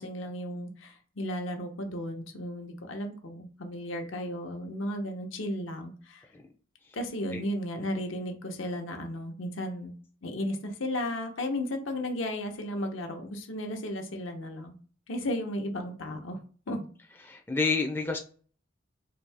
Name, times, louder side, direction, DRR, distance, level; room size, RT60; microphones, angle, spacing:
voice 1, 0.0-6.2 6.9-9.9 10.2-14.7 15.1-16.4 16.7-16.9, left 1 dB, 85° left, 4 dB, 0.9 m, -34 dB
voice 2, 17.3-18.2, left 4 dB, 10° left, 2 dB, 0.4 m, -29 dB
4.0 x 2.7 x 3.3 m, 0.43 s
head